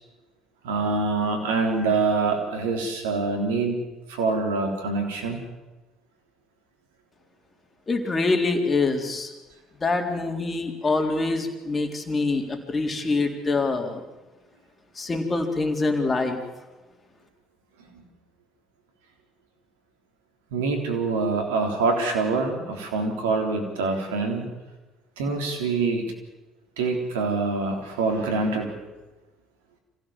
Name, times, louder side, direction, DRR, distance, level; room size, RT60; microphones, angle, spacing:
voice 1, 0.6-3.8 4.1-5.4 20.5-24.5 25.2-26.1 26.8-28.7, right 3 dB, 85° right, 3 dB, 3.7 m, -25 dB
voice 2, 7.9-9.3 9.8-14.0 15.0-16.4, left 3 dB, 30° left, 4 dB, 3.8 m, -25 dB
25.5 x 16.0 x 7.4 m, 1.1 s
hypercardioid pair, 60°, 0 cm